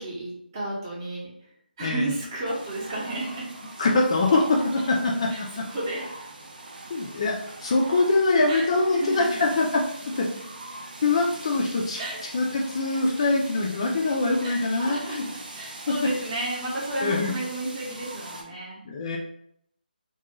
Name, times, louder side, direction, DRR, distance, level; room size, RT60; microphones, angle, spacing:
voice 1, 0.0-1.5 1.8-3.5 5.3-6.1 8.5-9.4 12.0-12.2 12.9-13.0 14.4-18.8, right 1 dB, 25° right, -5 dB, 0.8 m, -33 dB
voice 2, 1.8-2.1 3.8-5.5 6.9-9.8 10.2-10.3 11.0-12.0 12.3-15.2 15.9-16.0 17.0-17.4 18.9-19.2, left 3 dB, 35° left, -1 dB, 0.3 m, -23 dB
sound 1, 2.4-18.4, right 2 dB, 55° right, 0.6 m, -42 dB
2.4 x 2.2 x 2.9 m, 0.71 s
figure-of-eight pair, 160°, 5 cm